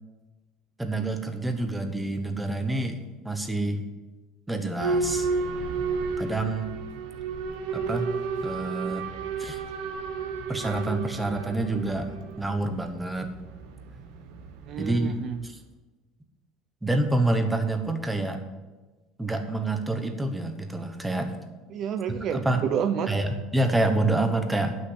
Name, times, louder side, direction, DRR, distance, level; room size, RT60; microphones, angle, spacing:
voice 1, 0.8-3.8 4.5-5.3 6.2-6.7 7.7-8.1 8.4-9.1 9.4-9.6 10.5-12.1 12.4-13.3 14.8-15.1 15.4-15.6 16.8-18.4 19.2-21.4 22.3-22.6 23.1-24.8, right 2 dB, 5° right, 6 dB, 1.0 m, -27 dB
Boat Water vehicle / Alarm, 4.8-15.4, right 4 dB, 85° right, 1.2 m, -32 dB
voice 2, 14.7-15.4 21.7-23.1, right 8 dB, 40° right, 9 dB, 0.5 m, -29 dB
11.0 x 6.2 x 7.9 m, 1.2 s
cardioid pair, 165°, 0 cm